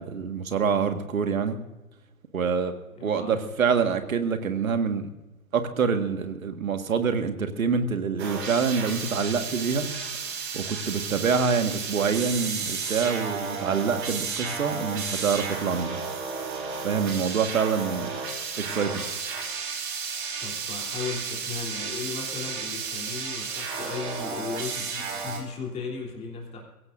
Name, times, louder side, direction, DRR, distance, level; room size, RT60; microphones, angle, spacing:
voice 1, 0.0-1.6 2.3-2.7 3.0-5.1 5.5-9.9 10.5-16.0 16.8-18.2 18.6-19.1, right 6 dB, 65° right, 7 dB, 1.9 m, -26 dB
voice 2, 2.9-3.4 20.4-26.6, left 5 dB, 15° left, -1 dB, 3.5 m, -36 dB
sound 1, 8.2-25.4, right 5 dB, 45° right, 4.3 m, -33 dB
22.5 x 16.5 x 2.7 m, 1.0 s
figure-of-eight pair, 125°, 45 cm